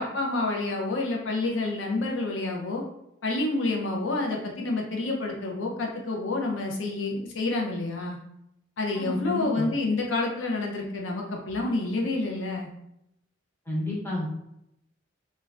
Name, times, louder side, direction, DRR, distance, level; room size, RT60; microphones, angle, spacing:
voice 1, 0.0-2.8 3.2-8.2 8.8-12.7, left 2 dB, 70° left, 0 dB, 0.4 m, -28 dB
voice 2, 8.9-9.6 13.7-14.3, left 1 dB, 10° left, -6 dB, 0.8 m, -31 dB
3.2 x 2.2 x 2.4 m, 0.81 s
head